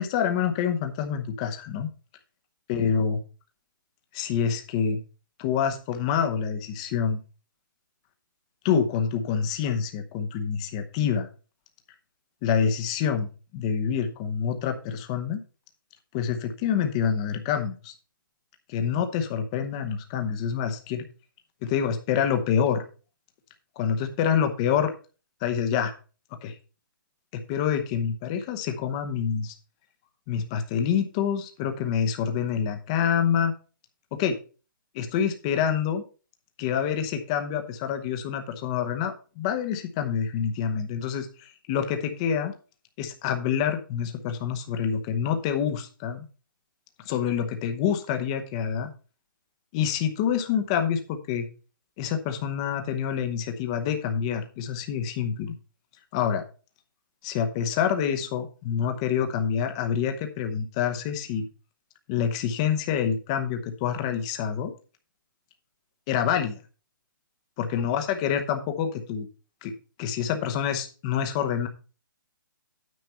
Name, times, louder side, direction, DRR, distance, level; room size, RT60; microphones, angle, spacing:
voice 1, 0.0-1.9 2.7-3.2 4.1-5.0 5.4-7.2 8.6-11.3 12.4-15.4 16.1-17.9 18.7-21.0 21.6-22.8 23.8-24.9 25.4-25.9 26.4-26.6 27.3-29.5 30.3-33.5 34.2-34.4 34.9-36.0 36.6-42.5 43.0-46.2 47.1-48.9 49.7-51.5 52.0-55.5 56.1-56.4 57.2-61.4 62.1-64.7 66.1-66.6 67.6-69.3 69.6-69.7 70.0-71.7, left 8 dB, 15° left, 6 dB, 0.9 m, -27 dB
9.4 x 5.1 x 5.6 m, 0.35 s
hypercardioid pair, 175°, 11 cm